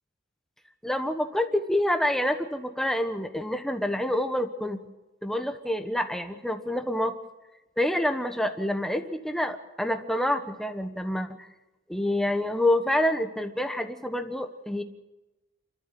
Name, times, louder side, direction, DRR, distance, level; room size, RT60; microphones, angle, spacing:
voice 1, 0.8-4.8 5.2-7.1 7.8-11.5 11.9-14.8, left 1 dB, ahead, 7 dB, 1.2 m, -27 dB
29.0 x 13.0 x 7.7 m, 1.0 s
head